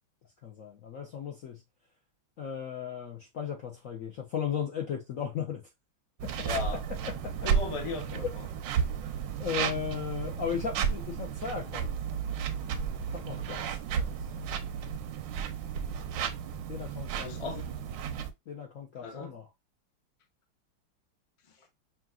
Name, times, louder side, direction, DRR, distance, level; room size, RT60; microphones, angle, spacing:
voice 1, 0.4-1.6 2.4-5.6 6.2-6.5 7.0-7.5 8.1-8.3 9.4-11.9 13.1-14.1 16.7-17.6 18.5-19.5, left 7 dB, 65° left, 0.8 m, -36 dB
sound 1, 6.2-18.3, right 7 dB, 75° right, 1.1 m, -33 dB
voice 2, 6.4-6.8 7.4-8.5 17.1-17.6 19.0-19.4, left 4 dB, 45° left, 0.4 m, -37 dB
5.7 x 2.5 x 2.3 m
omnidirectional pair, 2.2 m